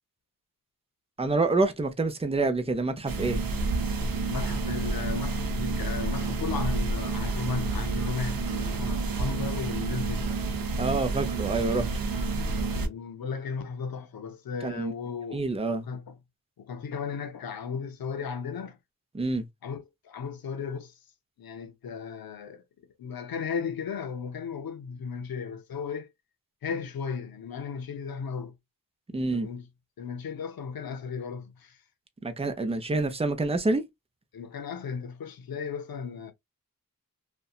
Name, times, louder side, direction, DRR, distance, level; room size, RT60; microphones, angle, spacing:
voice 1, 1.2-3.4 10.8-11.9 14.6-14.9 15.3-15.9 19.1-19.5 29.1-29.5 32.2-33.8, right 3 dB, 15° right, 0.6 m, -27 dB
sound 1, 3.1-12.9, right 3 dB, 80° right, 0.6 m, -29 dB
voice 2, 4.3-10.3 12.7-15.5 15.7-16.2 16.6-18.8 19.6-20.9 21.4-22.6 23.0-26.1 26.6-28.6 29.2-29.7 30.0-31.8 34.3-36.3, left 6 dB, 85° left, 0.6 m, -35 dB
2.7 x 2.2 x 2.4 m
cardioid pair, 55°, 35 cm